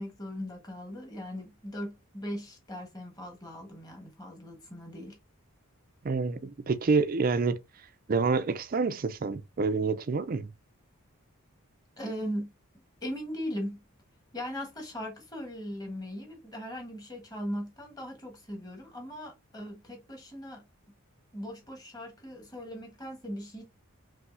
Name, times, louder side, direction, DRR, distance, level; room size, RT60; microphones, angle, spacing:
voice 1, 0.0-5.2 12.0-12.5 13.0-13.8 14.3-20.6 21.3-23.6, equal, 15° left, 1.3 m, -39 dB
voice 2, 6.0-7.6 8.1-10.5, right 4 dB, 40° right, 0.4 m, -27 dB
5.5 x 2.7 x 2.6 m
head